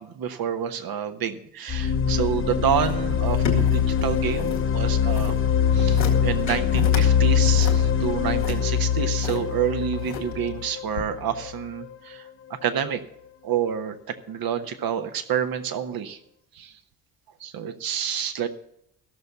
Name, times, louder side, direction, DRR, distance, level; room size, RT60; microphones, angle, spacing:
voice 1, 0.2-5.3 5.7-13.0 13.4-16.2 16.5-16.7 17.4-18.5, right 8 dB, 45° right, 9 dB, 1.3 m, -28 dB
sound 1, 1.7-11.5, left 8 dB, 25° left, 0.8 m, -22 dB
sound 2, 2.8-4.6 4.9-5.4 5.8-6.1 6.5-7.0 7.4-9.4 9.9-10.5 10.9-11.0, left 5 dB, 85° left, 1.9 m, -33 dB
14.5 x 6.7 x 6.9 m, 0.72 s
figure-of-eight pair, 50°, 50 cm